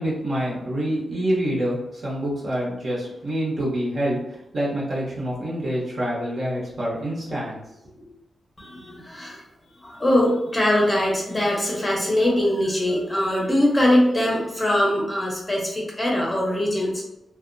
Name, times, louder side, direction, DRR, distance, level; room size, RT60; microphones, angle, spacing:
voice 1, 0.0-7.6 8.0-8.1, equal, 55° right, -5 dB, 1.0 m, -26 dB
voice 2, 8.6-9.4 9.8-17.0, left 1 dB, 15° left, -3 dB, 0.7 m, -22 dB
2.6 x 2.1 x 2.5 m, 0.86 s
wide cardioid pair, 110°, 0 cm